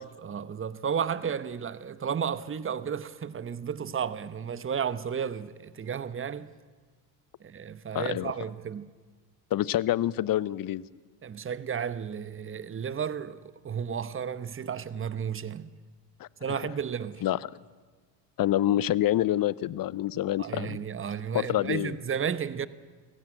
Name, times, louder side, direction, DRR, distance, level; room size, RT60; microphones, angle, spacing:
voice 1, 0.0-6.5 7.4-8.9 11.2-13.4 13.6-15.7 16.4-17.2 20.4-22.7, right 7 dB, 25° right, 1.0 m, -33 dB
voice 2, 7.9-8.3 9.5-10.8 16.2-16.6 17.2-17.5 18.4-20.8 21.3-22.0, left 13 dB, 45° left, 0.8 m, -27 dB
24.5 x 16.5 x 7.9 m
hypercardioid pair, 70°, 49 cm